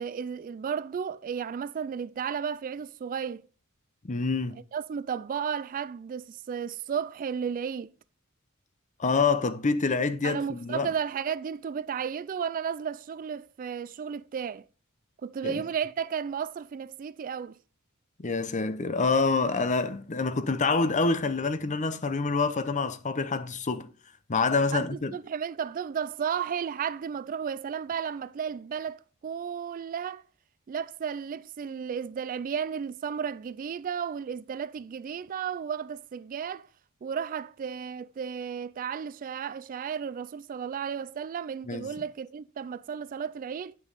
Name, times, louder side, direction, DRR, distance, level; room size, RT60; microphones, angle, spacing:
voice 1, 0.0-3.5 4.7-7.9 10.2-14.6 15.2-17.6 24.7-30.2 30.7-36.7 37.0-43.7, right 7 dB, 40° right, 0.3 m, -33 dB
voice 2, 4.0-4.6 9.0-10.9 15.4-15.6 18.2-23.9 24.3-25.1 41.6-41.9, left 4 dB, 35° left, 0.7 m, -27 dB
9.2 x 6.3 x 4.0 m
head